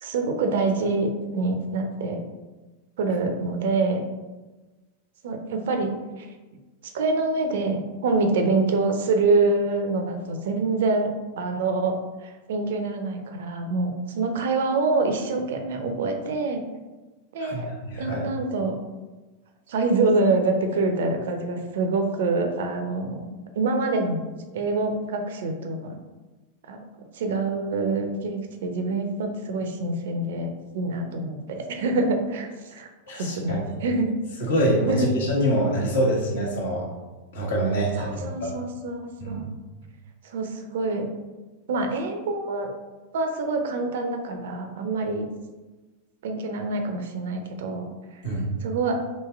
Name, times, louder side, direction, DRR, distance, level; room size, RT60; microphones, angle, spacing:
voice 1, 0.0-2.2 3.0-4.0 5.2-5.9 6.2-6.3 6.9-11.1 11.4-16.6 17.3-17.7 18.0-18.7 19.7-23.2 23.6-24.2 24.5-26.0 26.7-26.8 27.1-32.9 33.2-34.1 34.9-35.1 38.0-39.5 40.2-41.1 41.7-42.7 43.1-45.3 46.2-47.9 48.6-49.0, right 3 dB, 55° right, 5 dB, 0.5 m, -26 dB
voice 2, 17.4-18.2 33.1-33.7 34.4-36.9 37.3-38.5 39.2-39.5 48.2-48.5, equal, 60° left, -3 dB, 1.1 m, -25 dB
3.1 x 2.8 x 3.4 m, 1.2 s
figure-of-eight pair, 90°, 0 cm